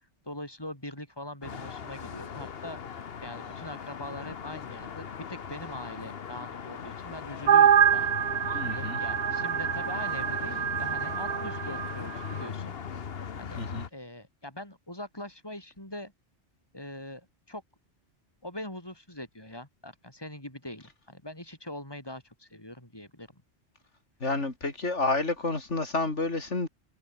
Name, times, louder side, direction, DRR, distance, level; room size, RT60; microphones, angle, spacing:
voice 1, 0.2-2.8 3.2-8.1 8.6-13.1 13.3-16.1 16.7-17.6 18.4-23.4, left 1 dB, 20° left, 6.3 m, -42 dB
sound 1, 1.4-13.9, left 7 dB, 60° left, 1.3 m, -39 dB
sound 2, 7.5-11.9, right 9 dB, 50° right, 0.6 m, -25 dB
voice 2, 8.5-9.0 13.6-13.9 24.2-26.7, left 3 dB, 90° left, 4.0 m, -29 dB
omnidirectional pair, 1.2 m